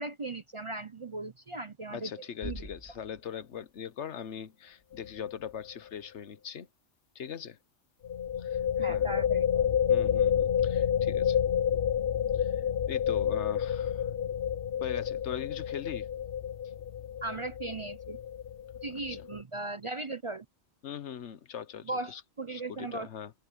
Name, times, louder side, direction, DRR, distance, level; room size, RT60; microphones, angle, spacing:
voice 1, 0.0-2.1 2.4-2.7 8.8-9.7 17.2-18.2 18.8-20.5 21.8-23.1, right 2 dB, 35° right, 0.6 m, -38 dB
voice 2, 1.9-6.7 7.1-7.6 8.4-9.1 9.9-11.4 12.3-14.1 14.8-16.1 18.9-19.2 20.8-22.2 22.5-23.3, left 8 dB, 80° left, 1.2 m, -41 dB
Bass drum, 2.4-4.1, left 1 dB, 30° left, 8.1 m, -46 dB
sound 1, 4.9-5.2 5.5-5.6 8.0-19.4, left 9 dB, 60° left, 0.9 m, -29 dB
omnidirectional pair, 1.2 m